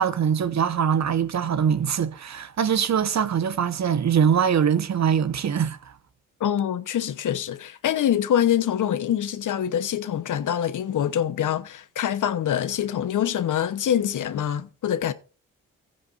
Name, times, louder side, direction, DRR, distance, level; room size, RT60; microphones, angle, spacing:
voice 1, 0.0-5.8, right 8 dB, 55° right, 1.2 m, -22 dB
voice 2, 6.4-15.1, left 10 dB, 65° left, 1.1 m, -25 dB
14.5 x 10.0 x 2.6 m
supercardioid pair, 50°, 33 cm